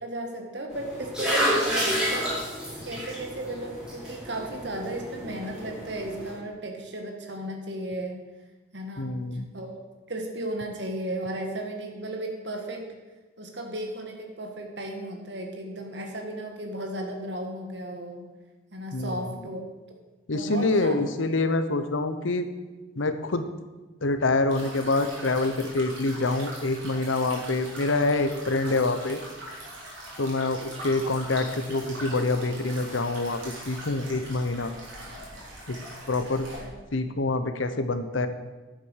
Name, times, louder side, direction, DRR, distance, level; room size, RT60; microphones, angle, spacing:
voice 1, 0.0-2.4 2.8-8.2 8.7-9.2 9.5-9.7 10.1-12.8 13.4-18.2 18.7-19.6 19.9-20.0 20.3-21.0 36.6-36.7, right 1 dB, 60° right, 3 dB, 1.8 m, -34 dB
sound 1, 0.7-6.3, equal, 5° right, 3.6 m, -30 dB
voice 2, 9.0-9.5 18.9-19.1 20.3-22.5 23.0-23.5 24.0-29.2 30.2-34.7 35.7-35.8 36.1-36.5 36.9-38.3, left 2 dB, 80° left, 10 dB, 0.9 m, -26 dB
sound 2, 24.5-36.6, right 1 dB, 80° right, 4.0 m, -41 dB
10.0 x 7.8 x 6.5 m, 1.2 s
head